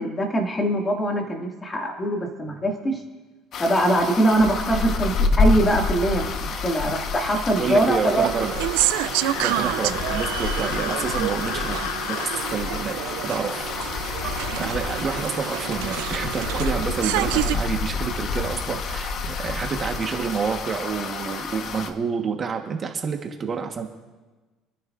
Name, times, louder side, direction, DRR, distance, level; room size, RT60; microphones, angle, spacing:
voice 1, 0.0-3.0 3.6-8.2, right 1 dB, 20° left, 1 dB, 2.2 m, -23 dB
sound 1, 3.5-21.9, left 4 dB, 55° left, 1.2 m, -28 dB
voice 2, 7.6-8.5 9.4-12.2 12.5-13.0 13.2-13.7 14.5-23.9, right 6 dB, 35° right, 3 dB, 1.3 m, -28 dB
sound 2, 8.1-17.6, right 17 dB, 85° right, 0.4 m, -28 dB
sound 3, 9.0-12.6, left 9 dB, 85° left, 0.8 m, -33 dB
27.0 x 10.5 x 2.6 m, 1.2 s
supercardioid pair, 105°, 0 cm